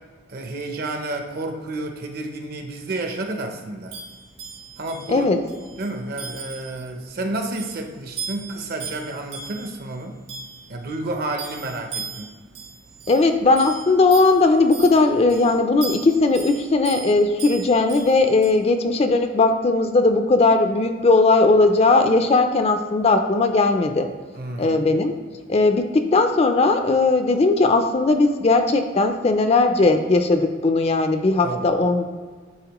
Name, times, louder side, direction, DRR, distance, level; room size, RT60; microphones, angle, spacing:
voice 1, 0.3-3.9 4.8-5.3 5.8-10.2 10.7-12.3 24.3-24.8 31.4-31.7, right 2 dB, 50° right, 4 dB, 0.7 m, -30 dB
sound 1, 3.9-18.5, right 5 dB, 70° right, 1.6 m, -39 dB
voice 2, 5.1-5.4 13.1-24.1 24.6-25.1 25.5-32.1, left 3 dB, 30° left, 6 dB, 0.4 m, -18 dB
9.5 x 3.7 x 3.0 m, 1.5 s
head